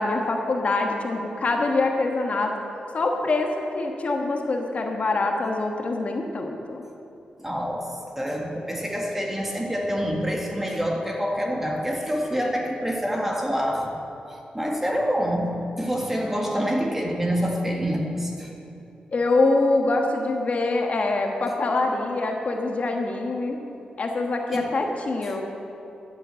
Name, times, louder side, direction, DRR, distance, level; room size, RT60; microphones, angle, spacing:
voice 1, 0.0-2.5 2.9-6.8 19.1-23.6 24.0-25.4, left 2 dB, 50° left, 2 dB, 1.3 m, -24 dB
voice 2, 7.4-14.0 14.3-18.5 24.5-24.7 25.2-25.4, equal, 10° right, 0 dB, 1.9 m, -27 dB
12.5 x 7.7 x 7.6 m, 2.8 s
cardioid pair, 80°, 3 cm